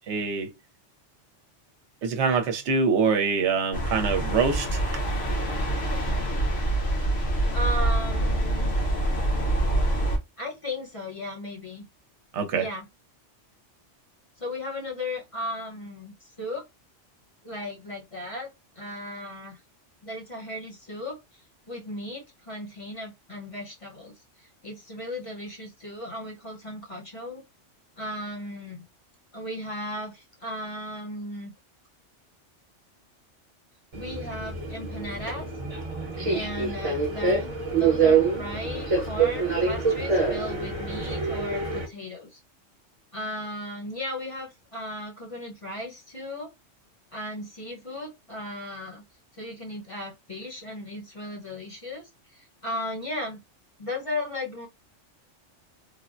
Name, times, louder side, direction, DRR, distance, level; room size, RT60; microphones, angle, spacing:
voice 1, 0.1-0.5 2.0-4.8 12.3-12.7, right 5 dB, 70° right, 0.9 m, -24 dB
sound 1, 3.7-10.2, right 1 dB, 60° left, 1.2 m, -25 dB
voice 2, 7.5-8.8 10.4-11.8 12.5-12.9 14.4-16.6 17.4-18.5 18.7-19.6 20.0-21.2 21.7-27.4 28.0-28.8 29.3-31.5 33.9-35.4 36.3-37.5 37.8-42.4 43.1-46.5 47.1-49.0 49.3-53.4 53.8-54.7, left 1 dB, 30° left, 0.8 m, -36 dB
Subway metro underground, 33.9-41.9, right 5 dB, 30° right, 0.8 m, -26 dB
3.3 x 2.1 x 2.5 m
omnidirectional pair, 1.3 m